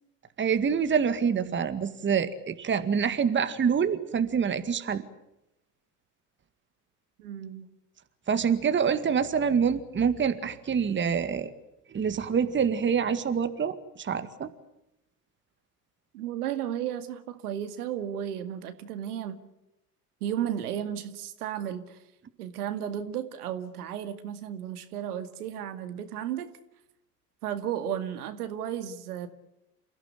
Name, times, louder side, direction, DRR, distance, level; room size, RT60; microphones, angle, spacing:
voice 1, 0.4-5.0 8.3-11.5 11.9-14.5, right 7 dB, 25° right, 2.0 m, -26 dB
voice 2, 7.2-7.7 16.1-19.4 20.2-22.0 22.4-26.5 27.4-29.3, right 10 dB, 65° right, 2.2 m, -34 dB
29.0 x 16.0 x 9.7 m
figure-of-eight pair, 75°, 48 cm